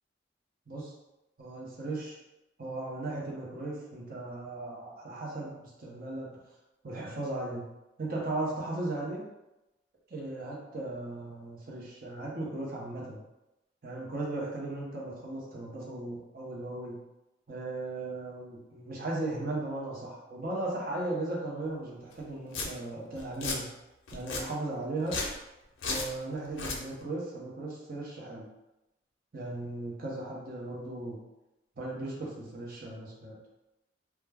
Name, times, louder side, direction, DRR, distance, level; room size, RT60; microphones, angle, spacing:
voice 1, 1.4-2.2 2.6-6.4 6.8-7.7 8.0-9.2 10.1-13.2 13.8-17.0 17.5-23.7 24.1-25.2 25.9-28.5 29.3-31.2 31.8-33.4, right 2 dB, 50° right, -4 dB, 0.7 m, -37 dB
Domestic sounds home sounds, 22.1-22.2 22.5-22.7 23.2-23.6 24.1-24.4 25.0-25.4 25.8-26.1 26.5-26.8, left 3 dB, 85° left, 0.5 m, -34 dB
2.2 x 2.2 x 3.3 m, 0.96 s
head